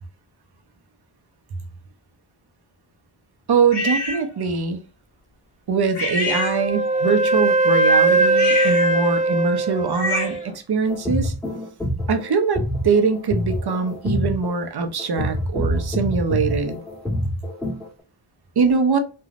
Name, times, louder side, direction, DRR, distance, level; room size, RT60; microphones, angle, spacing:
voice 1, 3.5-4.8 5.7-11.3 12.1-16.8 18.6-19.0, right 5 dB, 50° right, 0.7 m, -22 dB
sound 1, 3.7-4.2 6.0-7.0 8.3-10.5, left 2 dB, 55° left, 1.2 m, -27 dB
Wind instrument woodwind instrument, 6.2-10.4, right 2 dB, 20° right, 0.3 m, -20 dB
sound 2, 10.9-17.9, equal, ahead, 1.5 m, -26 dB
3.2 x 2.3 x 2.5 m
cardioid pair, 45°, 49 cm